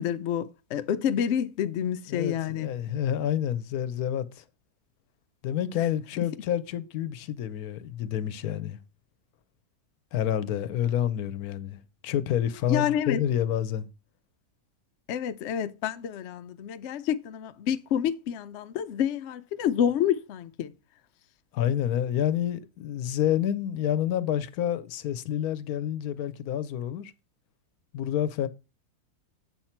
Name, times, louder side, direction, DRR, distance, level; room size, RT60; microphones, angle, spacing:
voice 1, 0.0-2.7 12.7-13.2 15.1-20.7, left 9 dB, 65° left, 0.8 m, -28 dB
voice 2, 2.1-4.4 5.4-8.8 10.1-13.9 21.5-27.1 27.9-28.5, left 10 dB, 80° left, 1.1 m, -28 dB
7.8 x 5.8 x 4.4 m
omnidirectional pair, 1.6 m